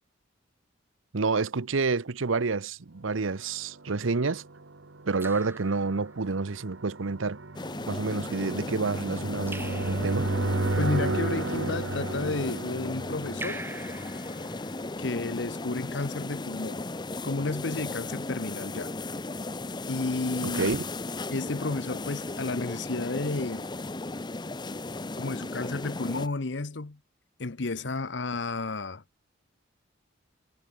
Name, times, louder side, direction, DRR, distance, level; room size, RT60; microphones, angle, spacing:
voice 1, 1.1-4.4 5.1-7.4 7.9-10.4 20.4-20.8, right 4 dB, 90° right, 0.8 m, -29 dB
Raindrop / Drip, 3.4-3.9 5.2-6.5 9.5-10.6 13.4-15.1, right 2 dB, 10° right, 1.7 m, -43 dB
sound 1, 3.7-14.5, right 2 dB, 75° right, 1.4 m, -33 dB
sound 2, 7.5-26.3, left 2 dB, 20° left, 0.7 m, -36 dB
voice 2, 10.8-13.7 15.0-16.8 17.2-18.9 19.9-20.7 21.3-23.7 25.2-27.0 27.4-29.0, left 3 dB, 65° left, 0.9 m, -32 dB
head